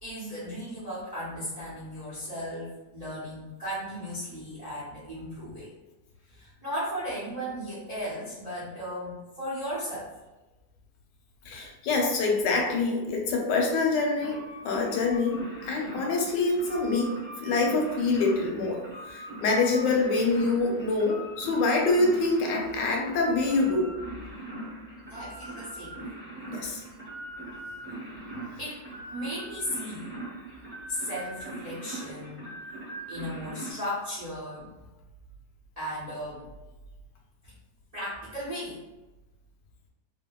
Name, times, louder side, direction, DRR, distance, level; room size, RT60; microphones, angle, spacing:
voice 1, 0.0-5.7 6.3-10.1 25.1-26.0 26.6-26.8 28.6-28.8 29.1-30.1 30.9-32.5 33.1-34.7 35.8-36.5 37.4-37.5 37.9-38.8, equal, 80° right, -9 dB, 0.3 m, -36 dB
voice 2, 11.5-23.9 26.5-26.8, left 3 dB, 80° left, 0 dB, 1.2 m, -26 dB
sound 1, 14.2-33.7, right 1 dB, 20° right, 1.3 m, -41 dB
2.7 x 2.4 x 2.2 m, 1.1 s
omnidirectional pair, 1.9 m